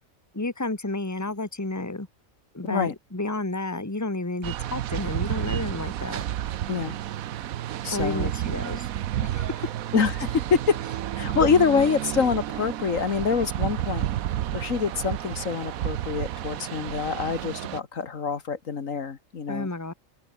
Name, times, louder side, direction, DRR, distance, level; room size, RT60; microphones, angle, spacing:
voice 1, 0.3-2.1 2.5-6.2 7.9-8.9 9.2-9.7 19.5-19.9, left 2 dB, 10° left, 1.9 m, -31 dB
sound 1, 4.4-17.8, right 12 dB, 85° right, 1.2 m, -31 dB
voice 2, 6.7-7.0 7.8-8.3 9.9-10.8 11.2-14.1 14.5-19.7, left 6 dB, 70° left, 2.0 m, -25 dB
open air
omnidirectional pair, 1.4 m